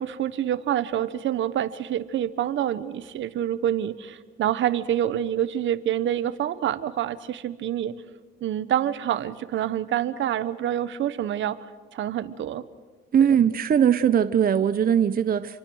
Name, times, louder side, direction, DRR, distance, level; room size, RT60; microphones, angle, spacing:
voice 1, 0.0-7.9 8.4-11.6 11.9-12.6 13.3-13.4, right 11 dB, 75° right, 14 dB, 1.3 m, -27 dB
voice 2, 13.1-15.6, right 8 dB, 45° right, 12 dB, 0.8 m, -20 dB
29.0 x 24.0 x 6.4 m, 1.4 s
cardioid pair, 90°, 20 cm